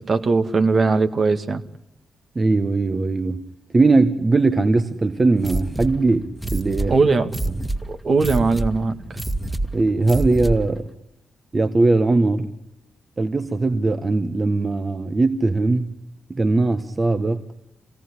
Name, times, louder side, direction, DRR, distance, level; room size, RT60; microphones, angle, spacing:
voice 1, 0.0-1.6 6.9-7.3 7.9-9.0, right 4 dB, 50° right, 2.0 m, -19 dB
voice 2, 2.3-3.4 3.7-6.9 9.7-10.8 11.5-12.5 13.2-16.0 16.3-17.4, right 3 dB, 35° right, 1.5 m, -20 dB
sound 1, 5.4-10.8, right 2 dB, 5° right, 2.2 m, -28 dB
26.0 x 18.0 x 9.9 m
supercardioid pair, 45°, 0 cm